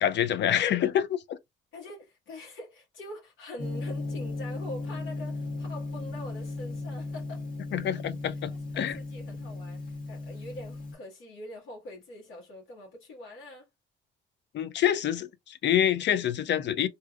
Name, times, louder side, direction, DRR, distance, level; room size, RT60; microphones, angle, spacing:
voice 1, 0.0-1.4 7.7-9.0 14.5-16.9, left 10 dB, 65° left, 0.5 m, -27 dB
voice 2, 1.7-7.5 7.9-8.0 8.3-13.7, left 1 dB, 85° left, 1.5 m, -44 dB
Gong, 3.6-10.9, left 2 dB, 45° left, 1.3 m, -36 dB
3.5 x 2.8 x 2.3 m
cardioid pair, 90°, 20 cm